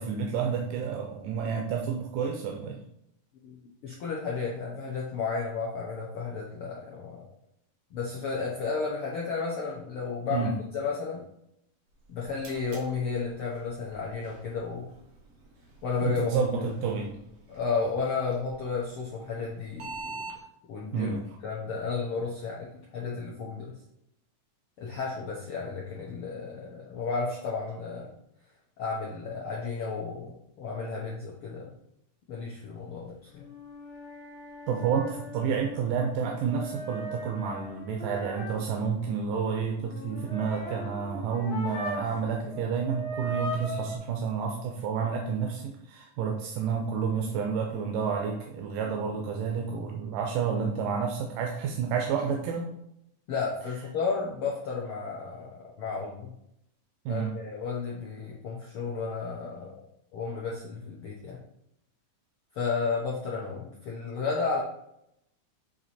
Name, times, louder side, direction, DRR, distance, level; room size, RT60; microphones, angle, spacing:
voice 1, 0.0-2.8 10.3-10.5 16.0-17.2 20.9-21.2 34.7-52.7 57.1-57.3, right 6 dB, 90° right, 1 dB, 2.3 m, -30 dB
voice 2, 3.4-7.2 7.9-11.2 12.1-14.9 15.8-16.4 17.5-20.2 20.7-21.2 21.4-23.8 24.8-28.2 28.8-31.7 32.3-33.5 53.3-56.3 57.1-59.8 60.1-61.4 62.5-64.6, left 4 dB, 85° left, -4 dB, 1.2 m, -33 dB
sound 1, 11.9-20.4, right 3 dB, 60° right, 2.3 m, -47 dB
sound 2, 33.3-42.2 42.5-44.0, equal, 65° left, 0.9 m, -40 dB
7.8 x 2.9 x 4.2 m, 0.77 s
omnidirectional pair, 3.7 m